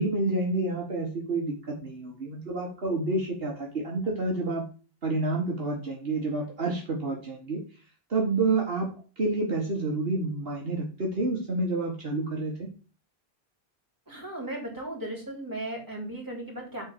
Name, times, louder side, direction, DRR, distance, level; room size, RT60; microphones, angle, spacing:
voice 1, 0.0-4.7 5.0-7.6 8.1-12.7, right 2 dB, 65° right, -1 dB, 1.9 m, -29 dB
voice 2, 14.1-16.8, right 1 dB, 20° right, -2 dB, 3.7 m, -36 dB
7.5 x 4.5 x 6.7 m, 0.36 s
omnidirectional pair, 1.1 m